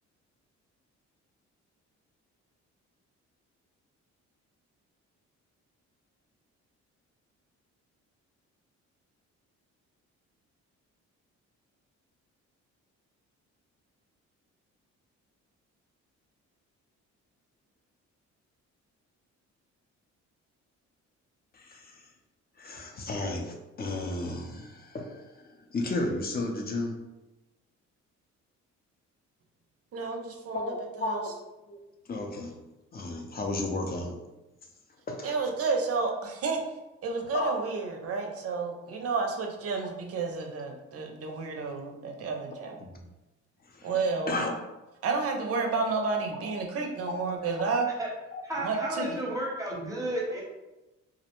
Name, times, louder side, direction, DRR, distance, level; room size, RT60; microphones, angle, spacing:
voice 1, 21.5-22.1 22.6-27.0 30.5-31.3 31.7-31.8 32.1-32.6 32.9-34.2 35.1-35.4 37.3-37.5 41.3-41.4 42.8-42.9 43.6-43.9 44.3-44.5 45.7-45.8 46.9-47.0 48.3-48.4, left 2 dB, 30° left, 2 dB, 0.5 m, -33 dB
voice 2, 29.9-30.6 31.1-31.2 35.2-36.6 37.0-42.8 43.8-44.4 45.0-47.9 48.6-49.2, right 4 dB, 50° right, 3 dB, 0.5 m, -31 dB
voice 3, 48.4-50.4, right 1 dB, 10° right, -3 dB, 0.7 m, -32 dB
2.4 x 2.1 x 2.9 m, 1.0 s
cardioid pair, 90°, 30 cm